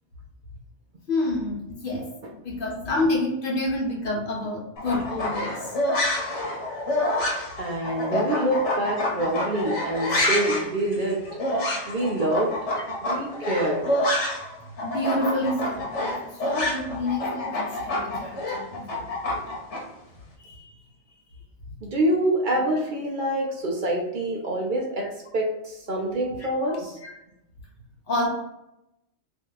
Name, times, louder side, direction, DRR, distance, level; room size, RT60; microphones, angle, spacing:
voice 1, 1.1-2.1 2.3-5.7 14.8-18.9 20.5-20.7 25.0-25.1 26.7-26.8 27.0-27.1 28.1-28.3, left 2 dB, 50° left, -3 dB, 1.1 m, -28 dB
sound 1, 4.8-14.5 14.8-19.8, left 1 dB, 80° left, 1.2 m, -27 dB
voice 2, 7.6-11.2 11.9-12.5 13.0-13.9 21.8-25.1 25.3-27.0, right 1 dB, 55° right, 0 dB, 0.7 m, -26 dB
2.7 x 2.6 x 3.8 m, 0.88 s
omnidirectional pair, 1.2 m